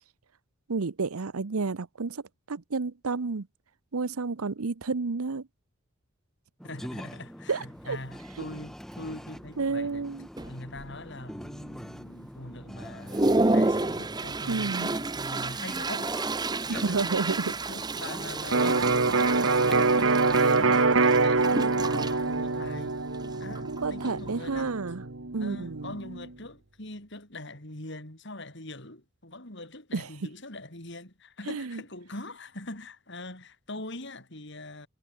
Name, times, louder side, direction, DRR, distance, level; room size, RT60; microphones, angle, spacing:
voice 1, 0.7-2.2 2.5-3.5 3.9-5.5 7.5-8.0 9.6-10.3 14.5-14.9 16.7-17.5 23.6-25.0 25.3-25.9 29.9-30.1 31.5-31.8, right 4 dB, 85° right, 0.8 m, -30 dB
voice 2, 6.6-10.0 10.4-16.2 16.7-19.3 19.6-22.9 23.4-24.8 25.3-34.9, left 2 dB, 55° left, 4.9 m, -42 dB
sound 1, 6.6-19.7, equal, ahead, 4.4 m, -44 dB
Toilet flush, 7.8-7.9 8.4-8.6 8.9-9.5 10.0-10.1 10.4-11.1 11.6-11.7 12.2-12.3 12.7-24.7, right 2 dB, 20° right, 0.7 m, -31 dB
Electric guitar, 18.5-26.3, right 3 dB, 65° right, 1.5 m, -25 dB
head